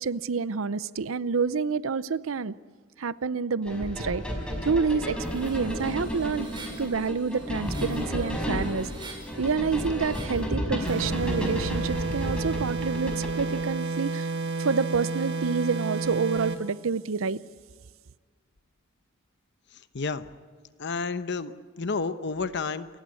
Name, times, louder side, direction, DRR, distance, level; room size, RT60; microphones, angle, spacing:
voice 1, 0.0-2.5 3.0-4.2 4.6-6.5 6.8-8.9 9.4-14.3 14.6-17.4, right 5 dB, 85° right, 0.6 m, -28 dB
sound 1, 3.7-13.6, equal, 5° left, 5.1 m, -32 dB
sound 2, 5.1-10.4, right 3 dB, 25° right, 5.7 m, -47 dB
sound 3, 10.9-16.7, right 3 dB, 60° right, 1.5 m, -31 dB
voice 2, 19.7-20.3 20.8-22.9, left 4 dB, 60° left, 0.9 m, -31 dB
29.0 x 15.5 x 9.6 m
head